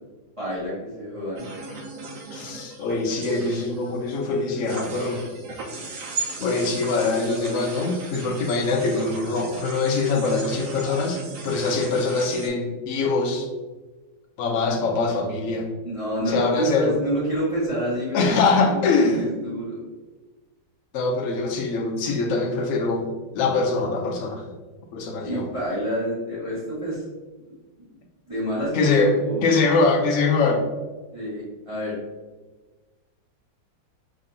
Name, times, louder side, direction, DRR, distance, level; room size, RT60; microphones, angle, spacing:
voice 1, 0.4-1.4 10.8-11.0 15.8-19.8 25.2-27.0 27.4-27.5 28.3-29.4 31.1-31.9, equal, 20° right, -9 dB, 1.2 m, -28 dB
sound 1, 1.4-12.5, right 3 dB, 60° right, 0.9 m, -37 dB
voice 2, 2.3-5.2 6.4-11.2 11.4-13.5 14.4-15.7 16.3-17.0 18.1-19.2 20.9-23.1 23.3-24.4 24.9-25.5 28.7-29.1 29.4-30.6, left 3 dB, 60° left, 2 dB, 0.9 m, -23 dB
5.1 x 3.4 x 2.7 m, 1.2 s
omnidirectional pair, 2.0 m